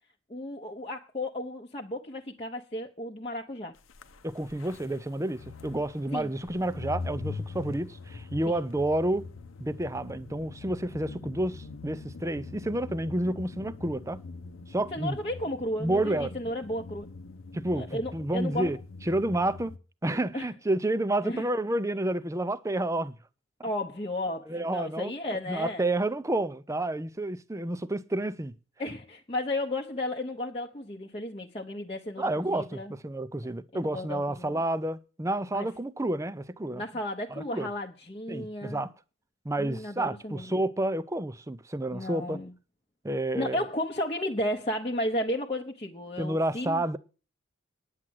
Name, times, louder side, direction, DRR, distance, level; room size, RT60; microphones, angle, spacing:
voice 1, 0.3-3.7 6.1-6.3 8.5-8.6 14.9-17.1 17.7-18.7 20.3-20.5 21.2-21.5 23.6-25.9 28.8-32.9 33.7-34.6 35.5-35.7 36.7-38.9 39.6-40.5 41.9-42.5 43.3-46.8, left 1 dB, 25° left, 0.9 m, -33 dB
sound 1, 3.9-19.8, left 4 dB, 75° left, 0.8 m, -43 dB
voice 2, 4.2-9.3 9.6-14.2 14.7-15.2 15.8-16.3 17.5-18.8 19.0-19.7 20.0-23.1 24.5-25.1 25.5-28.5 32.2-36.8 37.3-37.7 38.3-38.9 39.4-42.4 43.0-43.7 46.2-47.0, right 1 dB, 15° right, 0.5 m, -30 dB
9.8 x 7.6 x 7.7 m
head